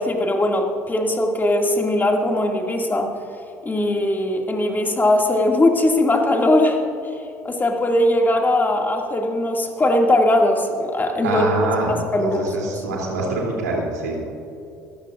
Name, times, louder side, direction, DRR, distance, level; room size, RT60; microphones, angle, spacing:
voice 1, 0.0-3.1 3.6-6.8 7.4-12.7, left 1 dB, 20° left, 2 dB, 2.3 m, -20 dB
voice 2, 11.2-14.2, right 2 dB, 80° right, -2 dB, 3.1 m, -25 dB
21.0 x 14.5 x 2.5 m, 2.8 s
hypercardioid pair, 60°, 9 cm